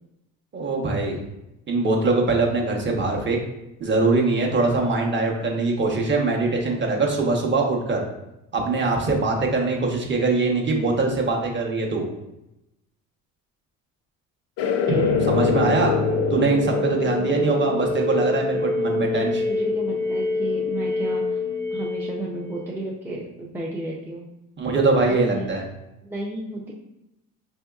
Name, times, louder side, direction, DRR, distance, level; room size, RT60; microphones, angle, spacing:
voice 1, 0.5-1.2 1.7-3.4 3.8-8.0 8.5-12.1 15.2-15.9 16.3-19.4 24.6-25.6, right 3 dB, 35° right, 0 dB, 1.0 m, -22 dB
sound 1, 14.6-20.7, left 8 dB, 80° left, 0.5 m, -27 dB
sound 2, 14.9-22.8, left 1 dB, 55° right, 1.4 m, -26 dB
voice 2, 19.0-21.4 21.7-24.3 25.1-25.6 26.1-26.7, right 2 dB, 5° right, -3 dB, 0.5 m, -33 dB
5.3 x 2.7 x 2.3 m, 0.90 s
cardioid pair, 100°, 33 cm